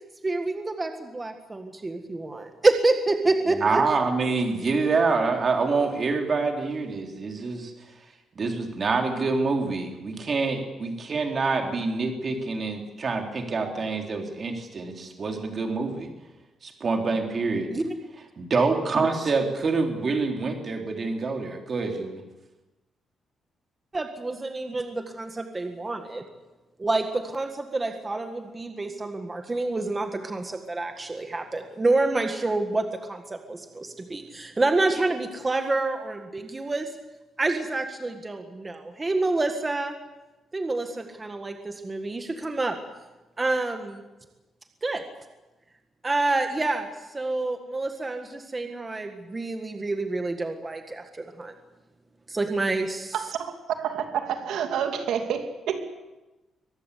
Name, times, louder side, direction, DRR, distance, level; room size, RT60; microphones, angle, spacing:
voice 1, 0.2-3.8 17.7-17.9 23.9-26.2 26.8-36.9 37.4-39.9 40.5-42.8 43.4-44.0 44.8-45.0 46.0-51.5 52.3-53.2, right 2 dB, 20° right, 6 dB, 1.7 m, -28 dB
voice 2, 3.5-7.7 8.3-16.1 16.6-17.7 18.4-22.2, right 4 dB, 35° right, 3 dB, 3.5 m, -26 dB
voice 3, 53.1-53.5 53.8-56.0, right 8 dB, 90° right, 6 dB, 2.7 m, -29 dB
23.5 x 20.0 x 8.4 m, 1.1 s
cardioid pair, 150°, 0 cm